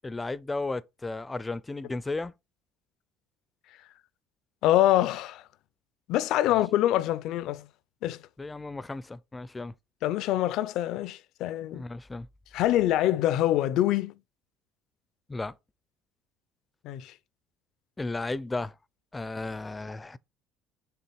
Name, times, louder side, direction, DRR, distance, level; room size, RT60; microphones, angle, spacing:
voice 1, 0.0-2.3 6.5-6.6 8.4-9.7 11.7-12.3 15.3-15.6 18.0-18.7 19.1-20.2, left 2 dB, 15° left, 0.5 m, -34 dB
voice 2, 4.6-5.4 6.1-7.7 8.0-8.2 10.0-11.8 12.5-14.1 16.8-17.1, left 13 dB, 70° left, 0.5 m, -25 dB
7.0 x 3.6 x 4.6 m
supercardioid pair, 85°, 0 cm